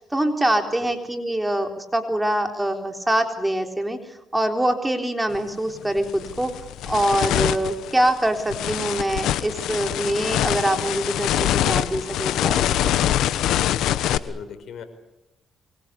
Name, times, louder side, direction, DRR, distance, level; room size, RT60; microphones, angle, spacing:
voice 1, 0.0-4.0 4.3-6.5 6.9-12.9, right 1 dB, 10° right, 5 dB, 3.9 m, -24 dB
sound 1, 5.3-5.5 6.0-14.2, left 12 dB, 85° left, 1.1 m, -24 dB
voice 2, 14.0-14.8, left 7 dB, 70° left, 9 dB, 4.9 m, -39 dB
25.0 x 23.5 x 8.5 m, 0.87 s
cardioid pair, 90°, 0 cm